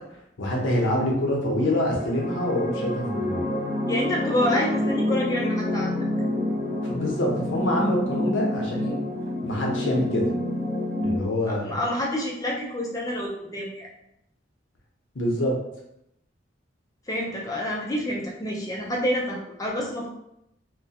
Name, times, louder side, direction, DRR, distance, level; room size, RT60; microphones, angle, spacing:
voice 1, 0.4-3.4 6.9-9.0 9.4-10.3 11.0-11.8 15.1-15.5, left 1 dB, 75° left, -1 dB, 0.6 m, -25 dB
sound 1, 1.6-11.2, left 1 dB, 45° right, 0.7 m, -28 dB
voice 2, 3.9-5.9 11.5-13.9 17.1-20.1, left 1 dB, 20° left, -2 dB, 0.4 m, -28 dB
2.3 x 2.2 x 2.7 m, 0.81 s
head